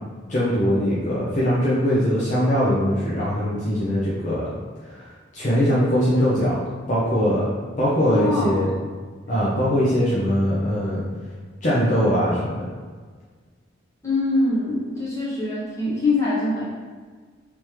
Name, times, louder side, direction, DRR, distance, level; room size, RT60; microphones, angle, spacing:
voice 1, 0.3-4.5 4.9-5.0 5.3-6.6 6.9-7.5 7.8-8.7 9.3-11.0 11.6-12.6, equal, 40° left, -8 dB, 0.6 m, -21 dB
voice 2, 8.1-8.7 14.0-16.6, left 2 dB, 15° left, -9 dB, 1.1 m, -23 dB
3.4 x 3.1 x 3.0 m, 1.5 s
head